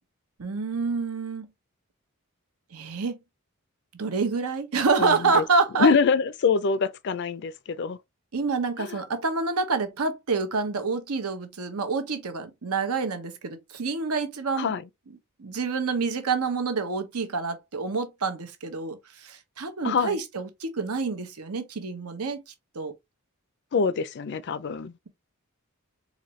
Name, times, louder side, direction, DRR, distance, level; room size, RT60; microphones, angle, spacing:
voice 1, 0.4-1.5 2.7-3.2 4.0-5.9 8.3-14.7 15.4-22.4 22.7-22.9, right 4 dB, 85° right, 0.9 m, -27 dB
voice 2, 5.0-5.4 5.8-8.0 8.8-9.0 14.6-14.8 19.8-20.2 23.7-24.9, left 5 dB, 50° left, 0.4 m, -25 dB
4.1 x 2.6 x 3.0 m
head